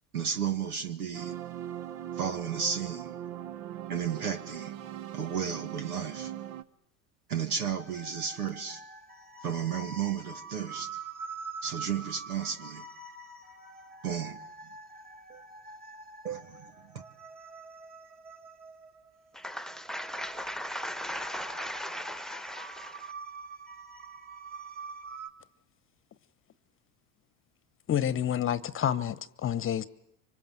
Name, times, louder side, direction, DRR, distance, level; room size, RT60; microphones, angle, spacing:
voice 1, 0.1-1.4 2.2-3.2 3.9-4.7 5.1-6.3 7.3-8.8 9.4-11.0 11.6-12.9 14.0-14.4 15.3-15.4 16.2-17.0, right 7 dB, 85° right, 2.0 m, -33 dB
sound 1, 1.1-6.6, right 11 dB, 55° right, 1.2 m, -40 dB
sound 2, 7.8-25.3, right 4 dB, 20° right, 3.1 m, -45 dB
voice 2, 19.3-23.1, equal, ahead, 1.3 m, -37 dB
voice 3, 27.9-29.9, left 10 dB, 30° left, 1.1 m, -29 dB
26.0 x 25.0 x 7.7 m
hypercardioid pair, 85°, 43 cm